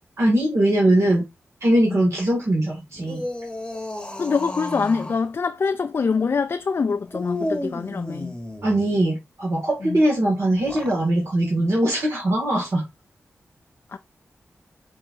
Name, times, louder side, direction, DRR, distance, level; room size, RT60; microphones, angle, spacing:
voice 1, 0.2-1.2 1.6-3.2 8.6-12.8, right 1 dB, 65° right, 1.8 m, -21 dB
sound 1, 2.9-5.2 7.1-8.9 10.5-11.0, left 1 dB, 15° left, 1.0 m, -32 dB
voice 2, 4.2-8.3 9.8-10.0 13.9-14.0, left 5 dB, 55° left, 0.3 m, -24 dB
5.4 x 2.9 x 2.6 m
cardioid pair, 50°, 5 cm